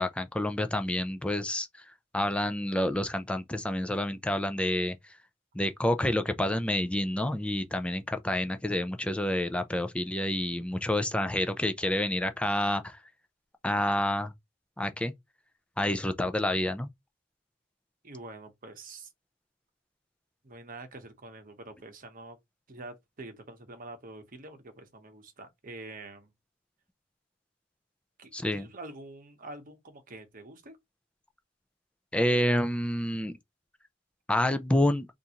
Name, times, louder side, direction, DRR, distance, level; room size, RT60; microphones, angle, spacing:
voice 1, 0.0-1.7 2.1-5.0 5.5-13.0 13.6-14.3 14.8-15.1 15.8-16.9 28.3-28.7 32.1-33.3 34.3-35.1, left 1 dB, 5° left, 0.4 m, -28 dB
voice 2, 18.0-19.1 20.4-22.4 22.7-26.3 28.2-30.8, right 2 dB, 45° right, 1.0 m, -46 dB
3.7 x 2.6 x 2.9 m
head